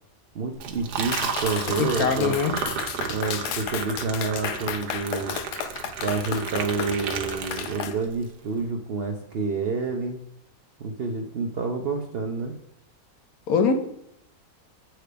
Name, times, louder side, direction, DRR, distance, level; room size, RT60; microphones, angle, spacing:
voice 1, 0.3-2.3 3.1-5.3 6.0-10.2 10.8-12.5, right 4 dB, 55° right, 3 dB, 0.7 m, -28 dB
Liquid, 0.5-8.2, right 6 dB, 80° right, 1.3 m, -33 dB
Clapping, 1.1-8.0, left 9 dB, 85° left, 1.2 m, -33 dB
voice 2, 1.8-2.6 13.5-13.8, left 5 dB, 70° left, 7 dB, 1.2 m, -22 dB
7.7 x 4.5 x 4.9 m, 0.75 s
omnidirectional pair, 1.7 m